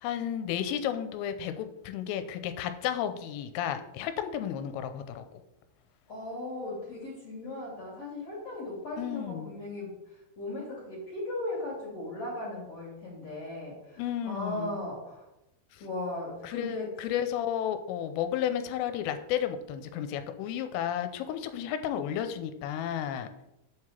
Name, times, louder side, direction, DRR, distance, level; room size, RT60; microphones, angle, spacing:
voice 1, 0.0-5.3 9.0-9.5 14.0-14.9 15.7-15.8 16.4-23.3, left 10 dB, 90° left, 9 dB, 3.3 m, -32 dB
voice 2, 6.1-15.2 15.8-16.9, left 2 dB, 40° left, -5 dB, 2.7 m, -37 dB
8.0 x 4.8 x 7.2 m, 0.90 s
omnidirectional pair, 5.8 m